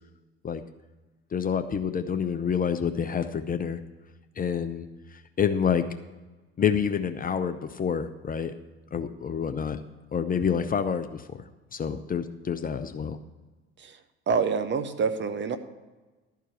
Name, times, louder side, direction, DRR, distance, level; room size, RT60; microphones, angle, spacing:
voice 1, 1.3-3.8 4.4-4.9 5.1-5.8 6.6-8.5 8.9-9.8 10.1-11.4 11.7-13.2, left 7 dB, 25° left, 9 dB, 0.6 m, -28 dB
voice 2, 14.3-15.6, right 5 dB, 35° right, 9 dB, 0.9 m, -26 dB
12.5 x 4.7 x 8.4 m, 1.2 s
figure-of-eight pair, 60°, 33 cm